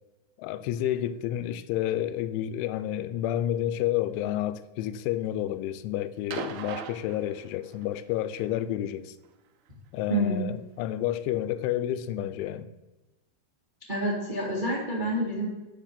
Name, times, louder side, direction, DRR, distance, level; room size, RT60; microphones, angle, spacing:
voice 1, 0.4-9.2 9.9-12.7, left 12 dB, 85° left, 3.0 m, -30 dB
sound 1, 6.3-7.9 9.2-9.3, right 6 dB, 75° right, 2.6 m, -38 dB
voice 2, 13.9-15.5, right 1 dB, 55° right, 0.5 m, -27 dB
11.0 x 5.1 x 7.3 m
omnidirectional pair, 5.4 m